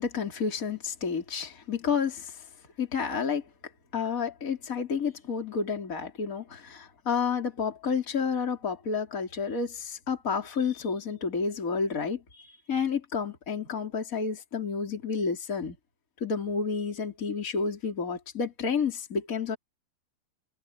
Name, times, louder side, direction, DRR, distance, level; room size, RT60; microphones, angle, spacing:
voice 1, 0.0-2.3 2.8-3.4 3.9-12.2 12.7-15.8 16.2-19.6, left 5 dB, 20° left, 3.8 m, -30 dB
omnidirectional pair, 4.5 m